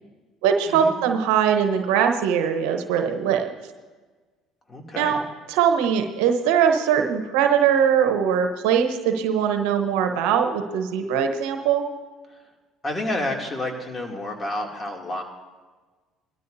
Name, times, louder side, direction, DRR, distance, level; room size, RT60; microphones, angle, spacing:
voice 1, 0.4-3.5 5.0-5.2 5.5-11.9, right 8 dB, 75° right, 6 dB, 1.0 m, -21 dB
voice 2, 4.7-5.2 12.8-15.2, left 1 dB, 30° left, 1 dB, 2.7 m, -29 dB
20.5 x 13.5 x 2.7 m, 1.3 s
hypercardioid pair, 65°, 0 cm